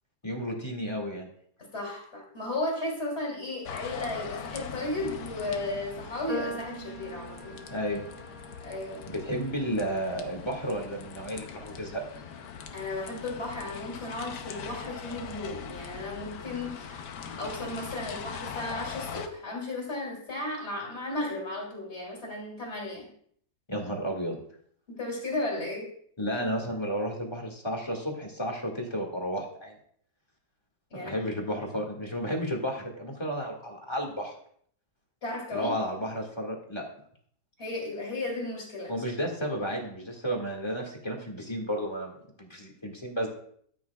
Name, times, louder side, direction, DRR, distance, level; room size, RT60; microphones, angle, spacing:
voice 1, 0.2-1.3 7.7-8.0 9.1-12.0 23.7-24.4 26.2-29.7 30.9-34.3 35.5-36.8 38.9-43.3, equal, 15° left, -1 dB, 1.9 m, -32 dB
voice 2, 1.7-7.6 8.6-9.0 12.7-17.0 17.4-23.1 24.9-25.9 30.9-31.1 35.2-35.7 37.6-38.9, left 2 dB, 40° left, -4 dB, 3.0 m, -34 dB
sound 1, 3.6-19.3, left 7 dB, 85° left, 1.5 m, -41 dB
sound 2, 6.3-12.6, right 1 dB, 30° right, 4.0 m, -44 dB
13.5 x 9.2 x 2.3 m, 0.62 s
omnidirectional pair, 1.8 m